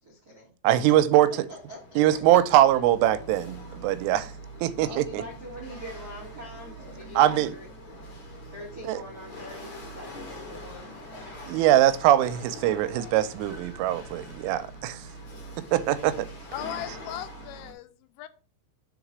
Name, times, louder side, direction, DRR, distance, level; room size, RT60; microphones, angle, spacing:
voice 1, 0.0-0.5 1.3-2.4 4.8-7.7 8.5-11.7, equal, 60° right, 1.0 m, -43 dB
voice 2, 0.6-1.5 2.0-4.3 4.6-5.2 7.2-7.5 8.9-9.0 11.5-15.1 15.7-16.3, right 13 dB, 90° right, 3.1 m, -22 dB
Chatter / Hiss / Rattle, 1.0-17.7, equal, 70° left, 1.2 m, -43 dB
voice 3, 16.5-18.3, left 12 dB, 90° left, 3.3 m, -38 dB
6.9 x 4.0 x 6.0 m
omnidirectional pair, 5.6 m